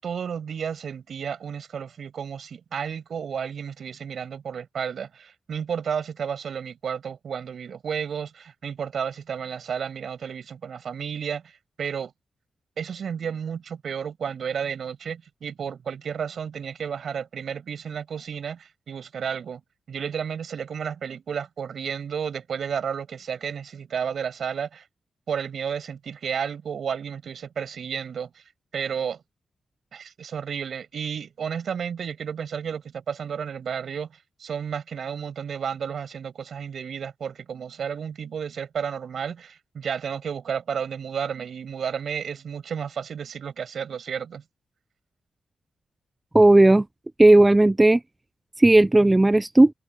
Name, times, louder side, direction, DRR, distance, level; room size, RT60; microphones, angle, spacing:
voice 1, 0.0-12.1 12.8-19.6 19.9-24.9 25.3-28.4 28.7-29.2 29.9-34.1 34.4-44.4, right 7 dB, 70° right, 8.0 m, -32 dB
voice 2, 46.3-46.8 47.2-48.0 48.6-49.7, right 2 dB, 15° right, 0.3 m, -15 dB
cardioid pair, 105°, 0 cm